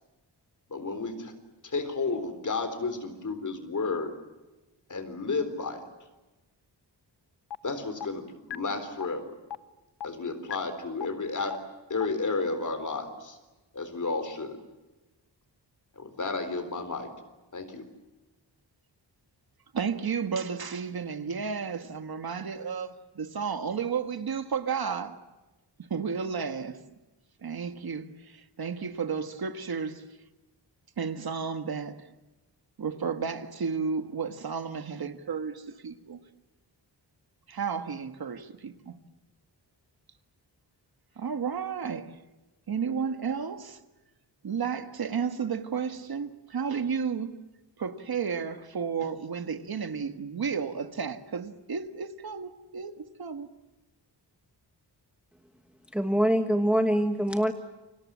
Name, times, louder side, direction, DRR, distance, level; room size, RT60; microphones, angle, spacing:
voice 1, 0.7-1.3 1.6-4.1 4.9-5.8 7.6-9.4 10.0-11.6 11.9-13.4 13.7-14.6 16.0-17.1 17.5-17.9, left 3 dB, 45° left, 3.9 m, -32 dB
sound 1, 7.5-7.6 8.0-8.1 8.5-8.6 9.0-9.1 9.5-9.6 10.0-10.1 10.5-10.6 11.0-11.1 11.5-11.6 12.0-12.1, left 9 dB, 70° left, 1.1 m, -34 dB
voice 2, 19.7-25.2 25.8-26.8 27.4-30.3 31.0-32.1 32.8-36.2 37.5-39.0 41.1-42.2 42.7-43.8 44.4-47.3 47.8-53.5, right 6 dB, 55° right, 1.7 m, -32 dB
voice 3, 55.9-57.5, equal, 5° right, 1.3 m, -24 dB
30.0 x 26.0 x 7.5 m
wide cardioid pair, 175°, 43 cm